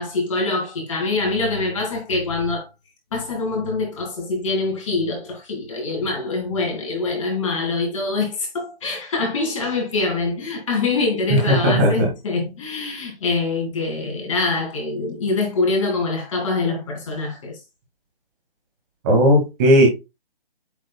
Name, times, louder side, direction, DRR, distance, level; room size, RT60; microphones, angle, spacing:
voice 1, 0.0-2.7 3.1-17.5, left 3 dB, 30° left, 2.5 m, -24 dB
voice 2, 11.5-12.1 19.0-19.9, equal, 20° right, 2.0 m, -15 dB
8.5 x 6.3 x 2.3 m
hypercardioid pair, 160°, 30 cm